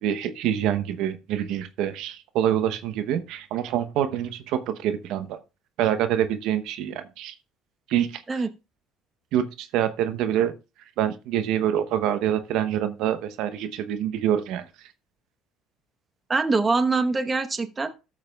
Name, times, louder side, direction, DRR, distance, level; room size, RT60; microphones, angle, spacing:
voice 1, 0.0-5.4 5.8-7.3 7.9-8.4 9.3-10.5 11.0-14.7, right 10 dB, 70° right, 10 dB, 0.9 m, -26 dB
voice 2, 16.3-17.9, right 3 dB, 25° right, 9 dB, 1.0 m, -23 dB
14.0 x 7.4 x 2.3 m, 0.29 s
supercardioid pair, 75°, 0 cm